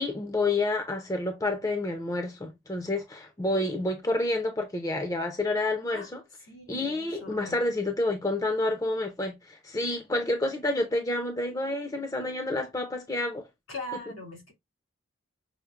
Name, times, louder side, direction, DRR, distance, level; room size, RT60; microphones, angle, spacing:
voice 1, 0.0-6.2 6.7-13.5, left 2 dB, 15° left, 0.5 m, -29 dB
voice 2, 6.5-7.6 13.7-14.5, equal, 85° left, 2.6 m, -41 dB
5.6 x 2.0 x 2.4 m
head